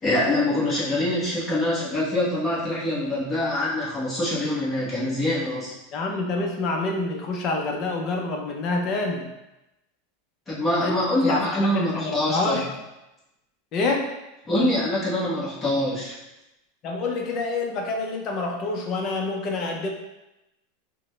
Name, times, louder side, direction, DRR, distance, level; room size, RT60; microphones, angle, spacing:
voice 1, 0.0-5.7 10.5-12.6 14.5-16.1, left 1 dB, 20° left, -7 dB, 1.1 m, -24 dB
voice 2, 5.9-9.3 10.8-10.9 11.2-12.8 13.7-14.1 16.8-19.9, left 3 dB, 40° left, 1 dB, 0.7 m, -27 dB
4.9 x 2.2 x 3.2 m, 0.95 s
supercardioid pair, 145°, 0 cm